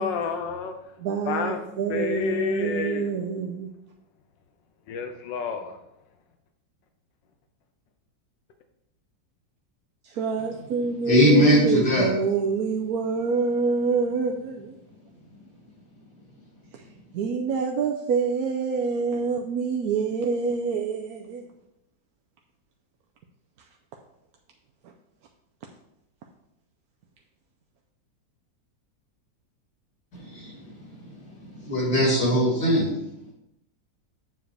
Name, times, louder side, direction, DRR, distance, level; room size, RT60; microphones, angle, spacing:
voice 1, 0.0-0.9 1.3-1.6 1.9-3.2 4.9-5.8, left 5 dB, 80° left, 1.5 m, -29 dB
voice 2, 1.0-3.7 10.0-14.7 16.7-16.8 17.1-21.5, right 5 dB, 65° right, 1.0 m, -26 dB
voice 3, 11.0-12.1 30.2-31.0 31.4-32.9, equal, 60° left, 3.2 m, -21 dB
7.6 x 7.0 x 3.3 m
omnidirectional pair, 2.0 m